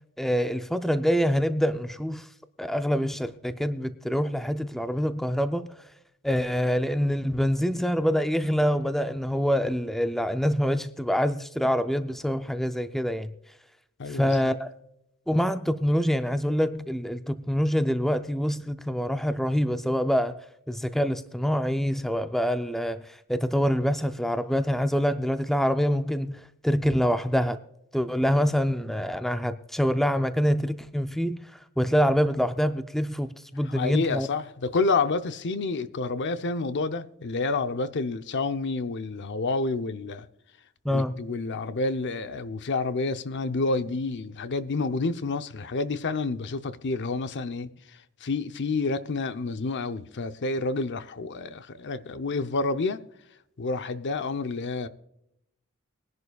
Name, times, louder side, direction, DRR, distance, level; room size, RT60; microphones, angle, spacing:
voice 1, 0.2-2.3 2.6-5.7 6.2-13.3 14.1-14.7 15.3-27.6 27.9-31.4 31.8-34.3 40.8-41.2, equal, ahead, 0.4 m, -25 dB
voice 2, 14.0-14.5 33.6-40.3 40.9-53.0 53.6-54.9, left 3 dB, 55° left, 0.6 m, -29 dB
22.0 x 11.0 x 2.3 m
head